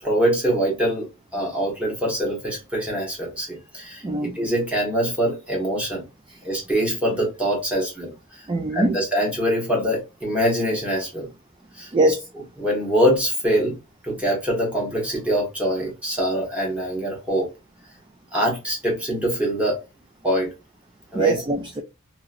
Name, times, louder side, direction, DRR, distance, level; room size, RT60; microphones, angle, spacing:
voice 1, 0.0-4.0 4.3-6.0 6.4-11.3 11.7-12.2 12.6-13.8 14.0-17.5 18.3-19.8 20.2-20.5 21.1-21.4, equal, 5° right, 1.2 m, -24 dB
voice 2, 4.0-4.4 8.5-9.0 11.9-12.3 21.1-21.8, right 2 dB, 20° right, 0.3 m, -22 dB
2.9 x 2.8 x 2.5 m
head